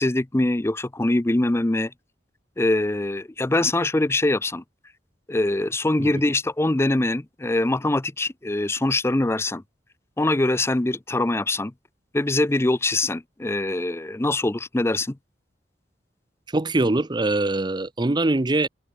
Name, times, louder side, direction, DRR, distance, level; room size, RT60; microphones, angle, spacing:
voice 1, 0.0-1.9 2.6-4.6 5.3-9.6 10.2-11.7 12.1-15.2, left 2 dB, 15° left, 0.5 m, -23 dB
voice 2, 16.5-18.7, right 2 dB, 25° right, 0.7 m, -22 dB
open air
head